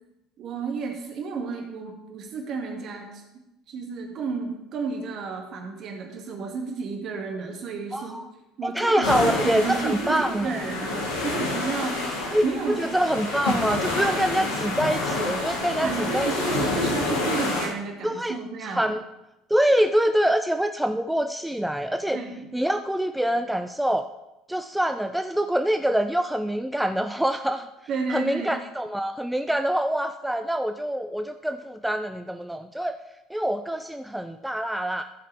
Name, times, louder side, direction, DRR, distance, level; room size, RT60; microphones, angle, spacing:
voice 1, 0.4-3.2 3.7-8.2 8.6-13.0 15.8-18.9 22.1-22.5 27.9-28.6, right 4 dB, 50° right, 2 dB, 2.0 m, -32 dB
voice 2, 7.9-8.2 8.6-10.6 12.3-16.3 18.0-18.4 18.6-19.0 19.5-22.2 22.5-24.1 24.5-27.7 28.1-33.0 33.3-35.0, right 1 dB, 5° right, 7 dB, 0.5 m, -25 dB
sound 1, 9.0-17.7, left 2 dB, 80° left, 2.2 m, -28 dB
14.0 x 7.6 x 3.4 m, 0.94 s
figure-of-eight pair, 60°, 0 cm